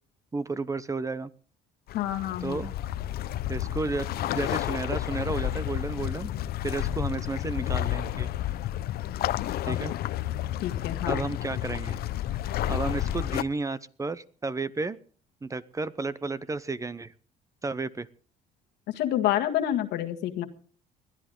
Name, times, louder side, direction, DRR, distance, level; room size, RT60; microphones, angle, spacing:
voice 1, 0.3-1.3 2.4-2.7 3.5-4.1 4.3-6.3 6.6-8.3 9.6-9.9 11.1-12.0 12.5-15.0 15.4-17.1 17.6-18.1, right 3 dB, 20° right, 17 dB, 0.7 m, -32 dB
voice 2, 1.9-2.6 9.5-9.8 10.6-11.2 19.0-20.4, left 12 dB, 85° left, 6 dB, 1.9 m, -28 dB
sound 1, 1.9-13.4, left 13 dB, 65° left, 0.7 m, -31 dB
21.0 x 13.5 x 3.8 m, 0.42 s
cardioid pair, 110°, 17 cm